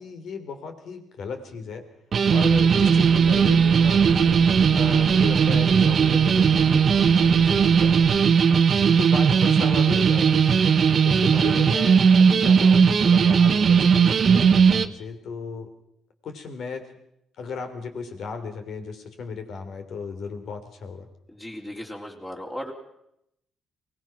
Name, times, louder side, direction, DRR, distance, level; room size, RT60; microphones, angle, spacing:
voice 1, 0.0-1.8 2.3-4.4 4.7-8.0 9.0-10.5 11.0-15.7 16.2-16.9 17.4-21.1, left 5 dB, 70° left, 7 dB, 3.4 m, -35 dB
sound 1, 2.1-14.9, right 6 dB, 50° right, 1.0 m, -18 dB
sound 2, 2.4-8.2, right 9 dB, 80° right, 1.1 m, -33 dB
voice 2, 21.3-22.7, equal, 20° left, -1 dB, 3.9 m, -36 dB
23.5 x 19.0 x 6.0 m, 0.77 s
cardioid pair, 90°, 0 cm